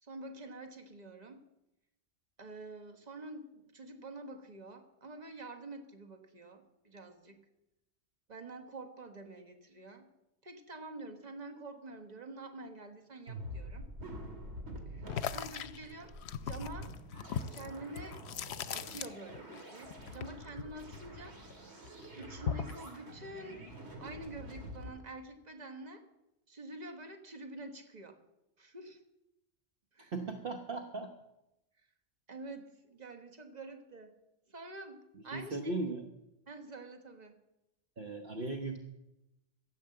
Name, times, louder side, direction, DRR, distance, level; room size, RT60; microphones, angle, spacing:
voice 1, 0.0-1.4 2.4-7.4 8.3-10.1 10.4-13.9 14.9-16.9 17.5-18.2 18.7-21.4 22.1-26.0 26.5-28.2 28.6-29.0 29.9-30.1 32.3-34.1 34.5-35.7 36.5-37.4, right 2 dB, 40° right, 5 dB, 1.5 m, -47 dB
sound 1, 13.3-24.9, equal, 70° right, 2.5 m, -47 dB
sound 2, 15.1-19.6 19.9-21.5 21.8-22.8, left 8 dB, 70° left, 0.9 m, -39 dB
voice 2, 30.0-31.1 35.3-36.1 38.0-38.8, right 3 dB, 55° right, 3 dB, 1.2 m, -37 dB
13.0 x 8.5 x 7.7 m, 0.90 s
omnidirectional pair, 1.2 m